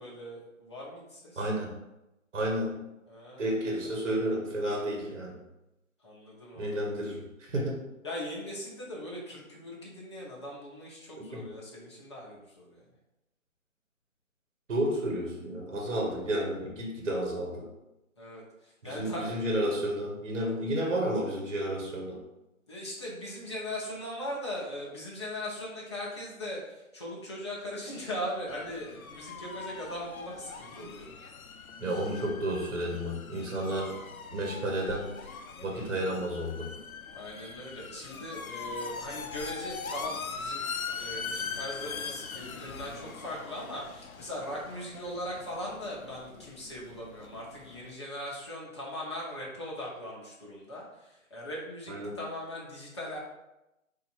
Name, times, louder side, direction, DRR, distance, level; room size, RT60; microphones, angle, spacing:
voice 1, 0.0-1.5 3.1-3.9 6.0-6.8 8.0-12.8 18.2-19.3 22.7-31.2 37.1-53.2, left 1 dB, 20° left, -5 dB, 0.8 m, -40 dB
voice 2, 1.4-1.7 2.3-2.8 3.4-5.4 6.6-7.8 11.2-11.5 14.7-17.7 18.8-22.2 31.8-33.9 34.3-35.1 35.6-36.7 51.9-52.2, right 1 dB, 60° right, 0 dB, 1.2 m, -31 dB
sound 1, 28.5-48.0, left 5 dB, 80° left, 0.7 m, -41 dB
4.3 x 2.8 x 4.4 m, 0.94 s
hypercardioid pair, 165°, 41 cm